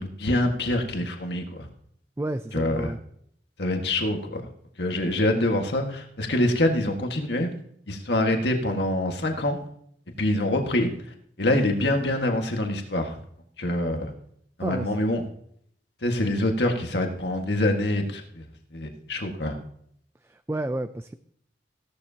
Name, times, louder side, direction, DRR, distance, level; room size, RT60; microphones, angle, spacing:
voice 1, 0.0-1.7 2.5-2.9 3.6-4.5 4.8-7.5 7.9-9.6 10.2-10.9 11.4-13.2 13.6-14.1 14.6-15.2 16.0-18.4 18.7-19.6, left 1 dB, 70° left, 3 dB, 1.7 m, -25 dB
voice 2, 2.2-3.0 14.6-14.9 20.2-21.1, right 1 dB, 15° right, 9 dB, 0.4 m, -31 dB
16.0 x 12.0 x 2.8 m, 0.67 s
head